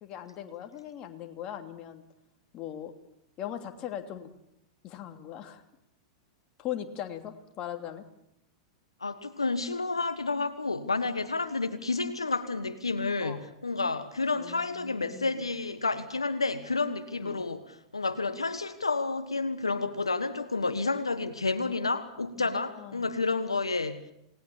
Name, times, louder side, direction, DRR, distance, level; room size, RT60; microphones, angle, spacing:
voice 1, 0.0-2.0 2.5-2.9 3.4-4.3 4.8-5.6 6.6-8.0 13.2-13.4 14.4-15.3 17.2-17.5 21.8-22.0 22.4-23.1, left 11 dB, 35° left, 5 dB, 2.9 m, -40 dB
voice 2, 9.0-24.0, left 3 dB, 90° left, 11 dB, 1.4 m, -30 dB
28.5 x 19.5 x 7.2 m, 0.79 s
figure-of-eight pair, 100°, 3 cm